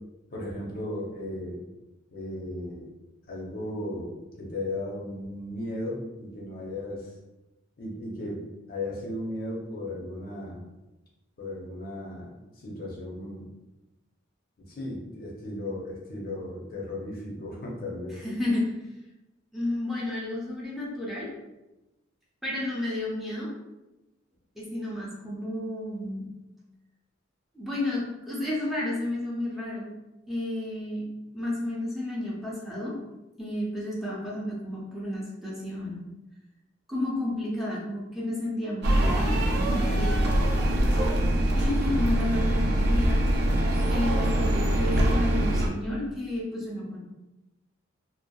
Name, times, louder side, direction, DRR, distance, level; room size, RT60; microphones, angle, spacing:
voice 1, 0.3-1.6 2.1-2.9 3.3-7.1 7.8-8.4 8.7-10.7 11.4-13.5 14.6-18.2, left 1 dB, 50° left, -2 dB, 0.6 m, -36 dB
voice 2, 18.1-18.7 19.5-21.3 22.4-23.5 24.6-26.3 27.5-29.9 30.3-31.0 31.3-33.0 33.4-36.1 36.9-40.3 41.5-43.2 43.9-47.0, left 1 dB, ahead, -6 dB, 0.5 m, -31 dB
sound 1, 38.8-45.7, right 1 dB, 55° right, 0.4 m, -23 dB
2.5 x 2.1 x 2.2 m, 0.99 s
head